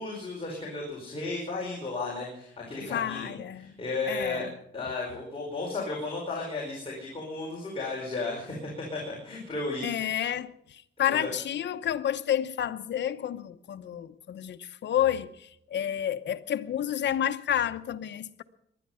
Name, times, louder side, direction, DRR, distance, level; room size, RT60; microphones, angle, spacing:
voice 1, 0.0-4.5 4.7-10.1 11.1-11.3, left 3 dB, 25° left, 4.8 m, -34 dB
voice 2, 2.8-3.8 4.1-4.5 9.8-18.4, left 10 dB, 65° left, 0.9 m, -30 dB
20.0 x 11.5 x 5.7 m
cardioid pair, 120°, 20 cm